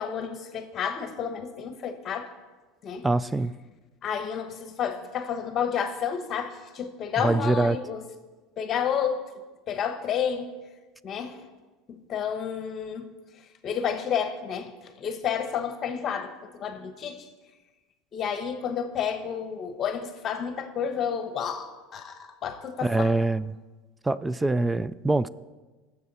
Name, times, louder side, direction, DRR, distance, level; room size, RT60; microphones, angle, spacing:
voice 1, 0.0-2.3 2.8-3.1 4.0-8.0 8.6-9.2 9.7-10.5 11.0-11.4 11.9-13.1 13.6-16.3 16.6-17.3 18.1-23.1, left 7 dB, 40° left, 1.1 m, -30 dB
voice 2, 3.0-3.5 7.2-7.8 22.8-23.5 24.0-25.3, right 2 dB, 10° right, 0.3 m, -24 dB
19.5 x 7.1 x 4.2 m
supercardioid pair, 110°, 0 cm